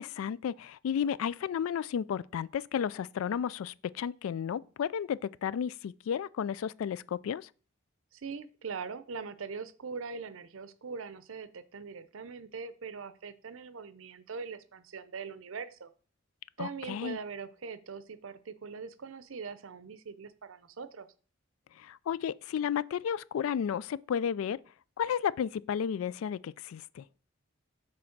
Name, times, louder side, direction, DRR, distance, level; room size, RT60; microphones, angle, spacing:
voice 1, 0.0-7.5 16.6-17.2 21.8-24.6 25.0-27.0, left 8 dB, 80° left, 0.3 m, -33 dB
voice 2, 8.1-15.9 16.6-21.1, right 5 dB, 75° right, 0.6 m, -42 dB
6.2 x 4.4 x 5.9 m
head